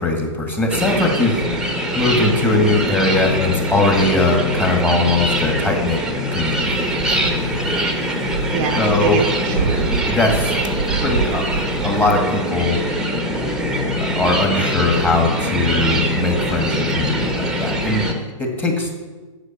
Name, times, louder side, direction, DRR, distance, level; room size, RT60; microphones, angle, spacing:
voice 1, 0.0-1.4 1.9-6.0 6.3-6.7 8.7-9.3 10.1-10.5 11.0-11.6 11.8-12.8 14.0-18.1 18.4-19.0, left 2 dB, 10° left, 2 dB, 1.7 m, -20 dB
sound 1, 0.7-18.1, equal, 5° right, 1.1 m, -22 dB
sound 2, 6.7-12.1, right 5 dB, 75° right, 0.7 m, -27 dB
voice 2, 7.2-7.8 8.5-9.9 18.6-19.0, right 6 dB, 35° right, 4 dB, 0.8 m, -26 dB
8.2 x 6.8 x 7.2 m, 1.3 s
figure-of-eight pair, 115°, 17 cm